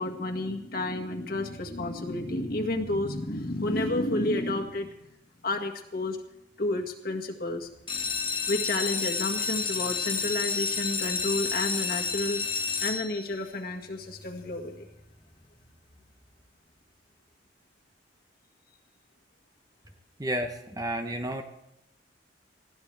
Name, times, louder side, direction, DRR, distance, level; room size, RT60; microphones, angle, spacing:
voice 1, 0.0-4.9 5.4-6.2 6.6-7.7 8.5-12.4 12.8-14.9, left 2 dB, 50° left, 2 dB, 1.8 m, -30 dB
sound 1, 7.8-13.5 14.1-14.6 15.0-15.1 15.3-15.4 15.9-16.0, left 5 dB, 25° left, 1.2 m, -30 dB
voice 2, 20.2-21.4, right 1 dB, 20° right, 6 dB, 0.9 m, -31 dB
20.0 x 15.5 x 3.4 m, 0.88 s
head